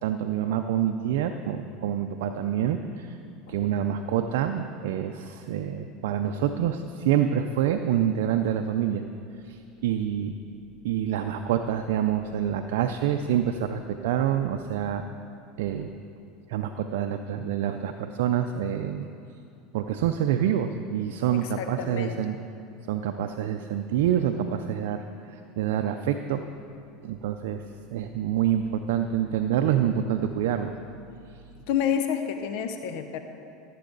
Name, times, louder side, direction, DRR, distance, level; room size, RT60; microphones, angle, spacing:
voice 1, 0.0-3.2 3.5-9.0 9.4-10.3 10.8-15.0 15.6-15.9 16.5-19.1 19.7-22.4 22.9-26.4 27.0-27.6 27.9-30.7, right 10 dB, 75° right, 6 dB, 0.4 m, -27 dB
voice 2, 21.3-22.2 31.7-33.2, left 8 dB, 70° left, 7 dB, 0.7 m, -29 dB
14.5 x 7.6 x 3.9 m, 2.7 s
hypercardioid pair, 100°, 0 cm